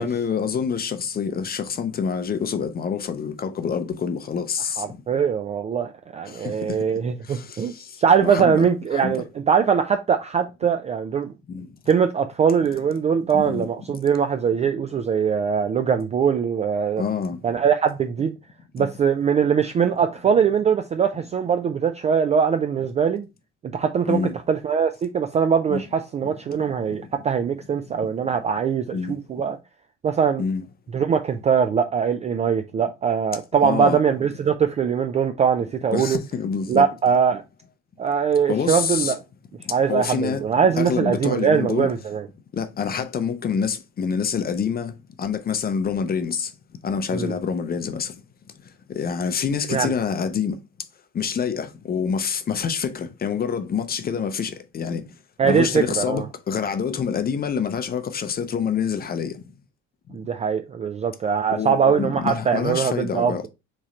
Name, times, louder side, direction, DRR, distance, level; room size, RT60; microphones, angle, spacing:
voice 1, 0.0-4.9 6.3-6.9 7.2-9.2 11.5-11.7 13.3-14.0 17.0-17.4 18.8-18.9 24.1-24.3 25.7-25.8 26.9-27.0 28.9-29.2 30.4-30.6 33.6-34.0 35.9-36.8 38.5-39.1 39.6-40.4 40.8-41.9 42.5-44.9 45.2-46.5 46.8-48.2 48.9-50.6 51.1-55.0 55.4-59.4 61.5-63.5, left 6 dB, 25° left, 0.6 m, -27 dB
voice 2, 4.8-11.3 11.9-17.0 17.4-18.4 18.7-23.3 23.7-24.2 24.5-29.6 30.0-30.4 30.9-36.2 36.7-37.4 38.0-39.2 39.7-42.3 47.1-47.3 49.7-49.9 55.4-56.3 60.1-63.5, right 7 dB, 20° right, 0.3 m, -22 dB
3.6 x 3.2 x 4.2 m
figure-of-eight pair, 50°, 37 cm